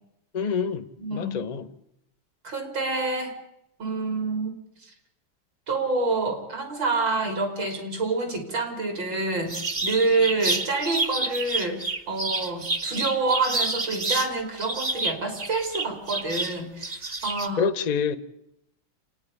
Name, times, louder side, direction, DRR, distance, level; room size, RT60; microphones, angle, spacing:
voice 1, 0.3-0.9 1.1-1.7 17.6-18.2, left 6 dB, 40° left, 0.6 m, -26 dB
voice 2, 1.0-1.4 2.4-3.4 3.8-4.5 4.8-4.9 5.7-17.7, right 3 dB, 70° right, 4.1 m, -27 dB
sound 1, 9.5-14.3 14.6-17.5, right 3 dB, 25° right, 0.9 m, -29 dB
27.5 x 9.7 x 9.9 m
omnidirectional pair, 2.1 m